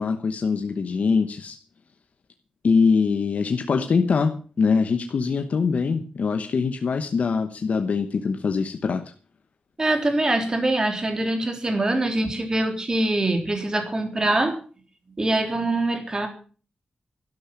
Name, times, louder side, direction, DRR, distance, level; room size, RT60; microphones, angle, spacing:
voice 1, 0.0-1.6 2.6-9.1, left 5 dB, 65° left, 6 dB, 1.1 m, -23 dB
voice 2, 9.8-14.6 15.2-16.3, right 2 dB, 30° right, 5 dB, 3.5 m, -23 dB
12.0 x 11.5 x 7.2 m, 0.40 s
wide cardioid pair, 125°, 3 cm